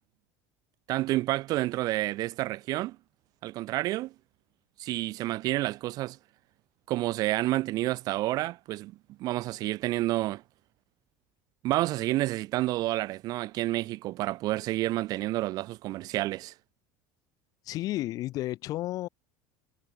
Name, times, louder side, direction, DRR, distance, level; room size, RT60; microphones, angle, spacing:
voice 1, 0.9-3.0 3.4-4.1 4.8-6.2 6.9-8.9 9.2-10.4 11.6-16.5, right 17 dB, 45° right, 2.6 m, -29 dB
voice 2, 17.6-19.1, left 16 dB, 45° left, 4.7 m, -32 dB
cardioid pair, 160°, 9 cm